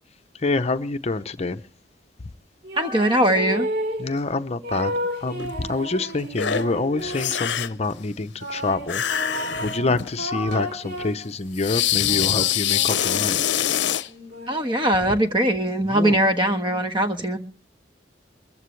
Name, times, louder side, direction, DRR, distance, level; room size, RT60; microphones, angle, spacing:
voice 1, 0.3-1.6 4.0-4.9 5.2-13.4 15.9-16.2, left 3 dB, 35° left, 0.7 m, -27 dB
sound 1, 2.6-4.1 4.6-7.6 8.4-11.3 11.8-15.4, equal, 70° right, 4.2 m, -33 dB
voice 2, 2.8-3.7 14.5-17.4, right 1 dB, 30° right, 1.4 m, -21 dB
sound 2, 5.4-5.5 6.4-6.7 7.0-7.8 8.9-10.1 10.5-10.6 11.5-14.1, left 10 dB, 80° left, 0.6 m, -24 dB
22.5 x 14.5 x 3.2 m
head